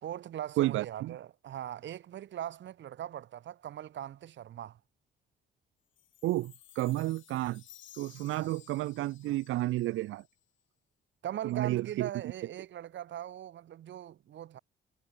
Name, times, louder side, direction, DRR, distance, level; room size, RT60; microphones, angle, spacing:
voice 1, 0.0-4.8 8.3-8.5 11.2-14.6, right 11 dB, 70° right, 2.0 m, -40 dB
voice 2, 0.6-1.2 6.2-7.6 7.9-10.2 11.4-12.1, right 16 dB, 90° right, 1.1 m, -31 dB
Chime, 6.0-10.4, left 12 dB, 75° left, 4.5 m, -57 dB
cardioid pair, 90°, 20 cm